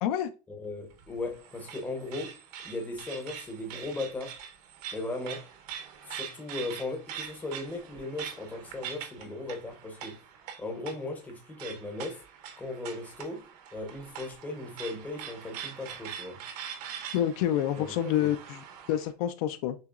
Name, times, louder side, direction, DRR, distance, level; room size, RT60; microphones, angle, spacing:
voice 1, 0.5-2.4 2.6-4.4 4.9-5.6 6.0-10.2 10.6-12.2 12.6-16.4 17.8-18.3, left 2 dB, 5° left, 0.7 m, -37 dB
sound 1, 0.9-19.1, right 8 dB, 70° right, 0.9 m, -43 dB
voice 2, 17.1-19.8, left 11 dB, 60° left, 0.5 m, -28 dB
6.7 x 2.9 x 2.4 m
supercardioid pair, 175°, 21 cm